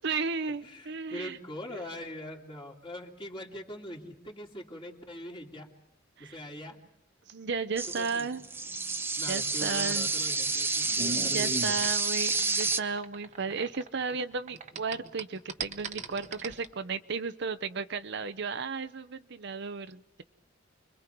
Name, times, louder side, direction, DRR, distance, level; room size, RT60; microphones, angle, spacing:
voice 1, 0.0-1.4 1.7-1.8 6.2-6.4 7.3-8.4 9.3-10.1 11.3-20.2, right 5 dB, 65° right, 11 dB, 0.8 m, -34 dB
voice 2, 0.6-5.7 6.2-6.8 7.8-8.3 9.2-11.8, left 1 dB, 25° left, -1 dB, 2.9 m, -42 dB
sound 1, 7.8-12.8, right 3 dB, 10° right, 0.7 m, -29 dB
sound 2, 9.9-14.2 14.5-16.7, right 3 dB, 40° right, 1.1 m, -39 dB
30.0 x 23.0 x 4.6 m, 0.82 s
head